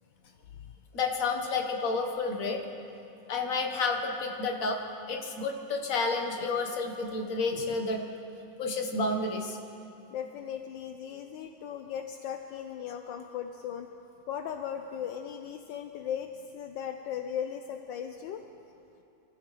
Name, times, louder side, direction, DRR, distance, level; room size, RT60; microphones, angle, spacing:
voice 1, 0.9-2.7 3.3-4.8 5.1-8.0 8.6-9.6, left 3 dB, 50° left, 3 dB, 1.6 m, -30 dB
voice 2, 7.5-7.9 10.1-13.9 14.3-18.4, left 9 dB, 75° left, 5 dB, 1.3 m, -37 dB
25.5 x 15.0 x 3.3 m, 2.8 s
omnidirectional pair, 2.1 m